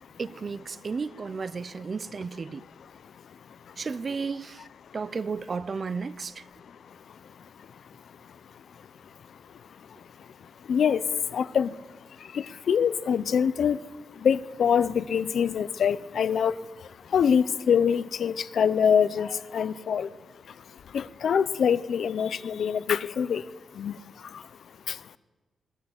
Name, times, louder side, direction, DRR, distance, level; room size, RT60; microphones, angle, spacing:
voice 1, 0.2-2.6 3.8-4.6 4.9-6.4, right 5 dB, 30° right, 0.6 m, -33 dB
voice 2, 10.7-11.0 11.3-11.7 12.3-13.8 14.2-16.5 17.1-19.3 19.5-20.1 20.9-23.4 23.8-23.9, left 7 dB, 55° left, 0.7 m, -24 dB
20.5 x 19.0 x 8.1 m
wide cardioid pair, 175°, 0 cm